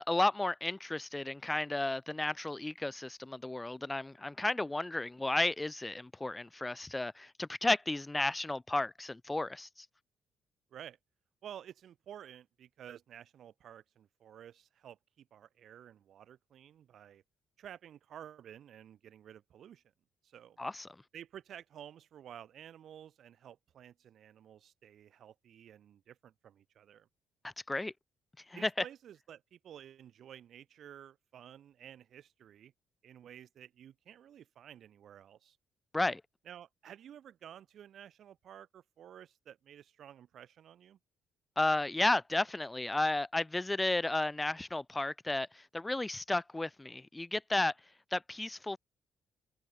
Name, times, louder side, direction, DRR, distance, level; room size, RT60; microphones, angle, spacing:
voice 1, 0.0-9.9 20.6-20.9 27.4-27.9 28.5-28.8 35.9-36.2 41.6-47.7 48.1-48.8, left 2 dB, 15° left, 0.5 m, -33 dB
voice 2, 11.4-17.2 17.6-19.8 20.2-20.6 21.1-27.1 28.5-32.7 33.0-35.6 36.4-41.0, right 10 dB, 65° right, 2.5 m, -52 dB
cardioid pair, 90°, 0 cm